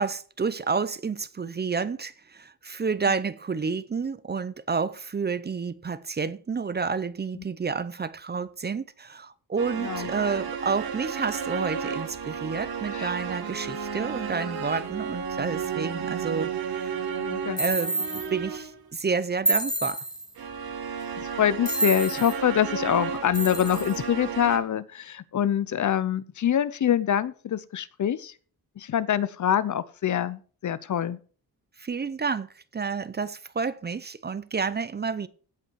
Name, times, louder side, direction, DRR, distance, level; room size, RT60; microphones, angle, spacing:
voice 1, 0.0-17.0 17.6-20.0 31.8-35.3, right 5 dB, 25° right, 0.6 m, -30 dB
sound 1, 9.6-18.8 20.4-24.6, right 6 dB, 75° right, 1.9 m, -33 dB
voice 2, 17.2-17.6 21.4-28.3 28.8-31.2, left 10 dB, 50° left, 0.7 m, -25 dB
sound 2, 17.6-18.3 19.4-20.3 21.6-22.4 23.3-24.0, right 1 dB, 10° left, 1.5 m, -28 dB
16.0 x 5.4 x 4.7 m
wide cardioid pair, 140°, 37 cm